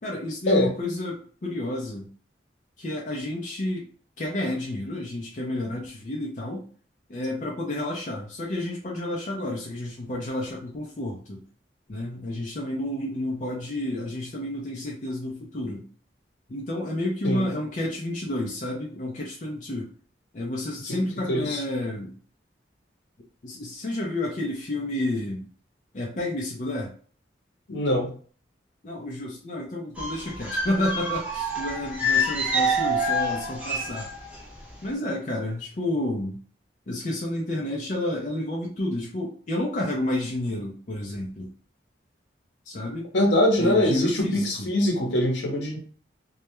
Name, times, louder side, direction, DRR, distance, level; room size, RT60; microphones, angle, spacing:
voice 1, 0.0-2.1 2.8-3.9 4.2-6.7 7.1-11.4 11.9-15.9 16.5-19.9 20.3-22.1 23.4-25.5 25.9-26.9 28.8-34.1 34.8-36.4 36.9-41.5 42.7-43.1 43.6-44.7, left 1 dB, 40° left, -2 dB, 0.4 m, -30 dB
voice 2, 21.3-21.6 27.7-28.1 43.1-45.8, left 1 dB, 75° left, 0 dB, 0.8 m, -22 dB
sound 1, 30.0-34.4 34.7-34.9, equal, 5° right, 0.6 m, -27 dB
2.2 x 2.1 x 2.9 m, 0.43 s
head